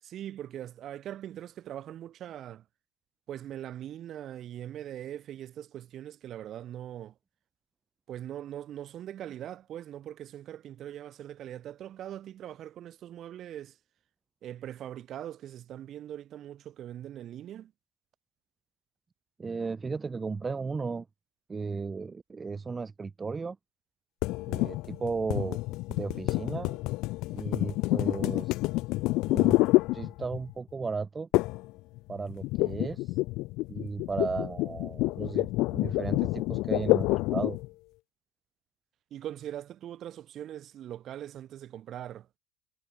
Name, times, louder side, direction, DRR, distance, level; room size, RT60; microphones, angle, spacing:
voice 1, 0.0-2.6 3.3-7.1 8.1-13.8 14.4-17.7 39.1-42.4, right 11 dB, 40° right, 6.1 m, -41 dB
voice 2, 19.4-21.1 21.5-23.6 24.5-25.6 25.9-26.8 27.3-28.6 29.3-29.6 29.9-31.3 32.1-33.2 33.7-37.6, right 4 dB, 15° right, 1.2 m, -35 dB
sound 1, 24.2-30.5 31.3-31.7 32.0-37.7, left 20 dB, 60° left, 0.4 m, -28 dB
cardioid pair, 160°, 0 cm